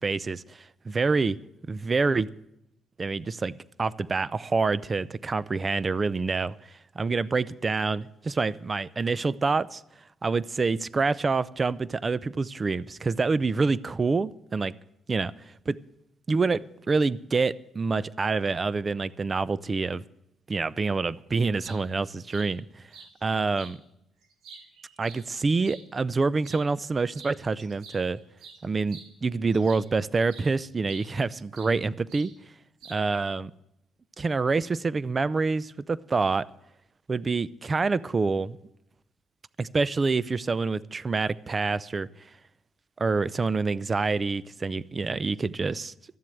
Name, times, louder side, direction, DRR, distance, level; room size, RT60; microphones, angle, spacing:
voice 1, 0.0-1.4 1.7-2.3 3.0-6.6 7.0-9.8 10.2-14.7 15.1-15.3 15.7-15.8 16.3-16.6 16.9-20.0 20.5-22.8 23.2-23.8 25.0-28.2 28.6-32.3 32.9-33.5 34.2-36.5 37.1-38.6 39.6-42.1 43.0-45.9, right 4 dB, 30° right, 0.5 m, -27 dB
sound 1, 21.6-21.8 22.3-22.5 22.9-23.1 23.6-23.7 24.2-25.8 26.4-26.7 27.1-27.3 27.6-29.9 30.3-30.5 30.9-31.8 32.1-32.3 32.8-33.2, right 5 dB, 90° right, 2.4 m, -48 dB
13.0 x 7.6 x 9.8 m
cardioid pair, 90°, 0 cm